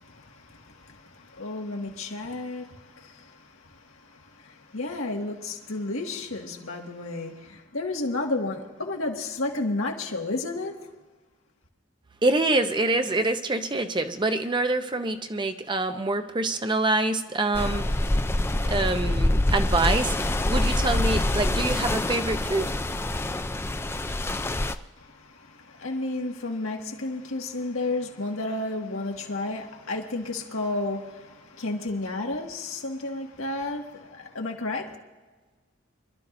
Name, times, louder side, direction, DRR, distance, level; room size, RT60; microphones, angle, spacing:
voice 1, 0.0-3.4 4.0-10.8 25.0-34.9, left 2 dB, 90° left, 1.9 m, -32 dB
voice 2, 12.2-18.0 18.6-22.7, right 2 dB, 25° right, 0.7 m, -26 dB
sound 1, 17.5-24.7, left 1 dB, 10° left, 0.4 m, -25 dB
25.0 x 12.5 x 2.7 m
head